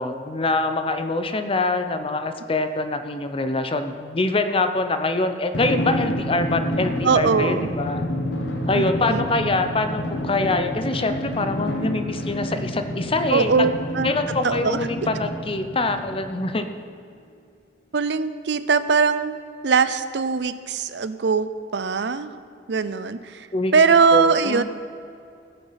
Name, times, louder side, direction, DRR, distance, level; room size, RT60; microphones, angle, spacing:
voice 1, 0.0-8.1 8.7-13.7 14.0-16.7 23.5-23.7 24.1-24.6, left 2 dB, 30° left, 8 dB, 0.8 m, -24 dB
Drum, 5.5-16.6, left 1 dB, 90° left, 1.6 m, -28 dB
voice 2, 7.0-7.7 8.7-9.3 13.3-14.1 14.4-14.9 17.9-19.4 19.6-22.4 22.7-23.5 23.7-24.6, right 5 dB, 75° right, 13 dB, 0.6 m, -21 dB
18.5 x 6.9 x 5.8 m, 2.4 s
head